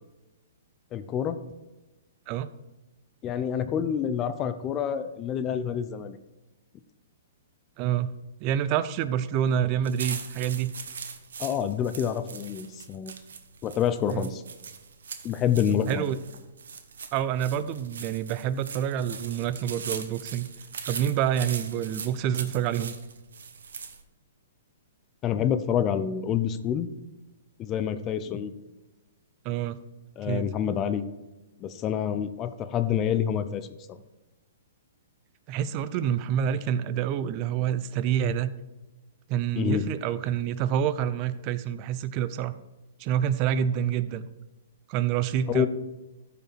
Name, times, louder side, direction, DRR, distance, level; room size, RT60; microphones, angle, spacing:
voice 1, 0.9-1.4 3.2-6.2 11.4-13.1 13.6-14.4 15.2-16.0 25.2-26.9 27.6-28.5 30.2-31.1 31.6-34.0 39.6-39.8 45.5-45.7, left 9 dB, 25° left, 10 dB, 0.6 m, -27 dB
voice 2, 7.8-8.1 8.4-10.7 14.1-14.3 15.9-16.2 17.1-20.5 20.9-22.9 29.4-29.8 30.2-30.5 35.5-38.5 39.3-42.5 43.0-44.3 44.9-45.7, right 9 dB, 35° right, 14 dB, 0.5 m, -27 dB
sound 1, 9.8-24.0, right 6 dB, 80° right, 1.1 m, -40 dB
13.5 x 5.1 x 4.6 m, 1.1 s
hypercardioid pair, 145°, 0 cm